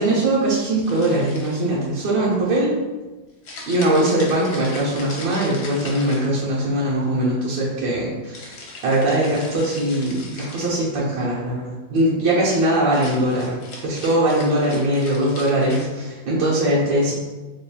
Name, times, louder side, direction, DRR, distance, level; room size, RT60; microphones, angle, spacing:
voice 1, 0.0-2.7 3.7-8.5 8.8-13.6 13.8-17.1, right 1 dB, 80° right, -8 dB, 1.6 m, -21 dB
sound 1, 0.8-1.8 3.4-6.7 8.3-10.8 12.8-15.8, left 3 dB, 65° left, 1.3 m, -39 dB
4.1 x 3.6 x 2.3 m, 1.2 s
omnidirectional pair, 2.0 m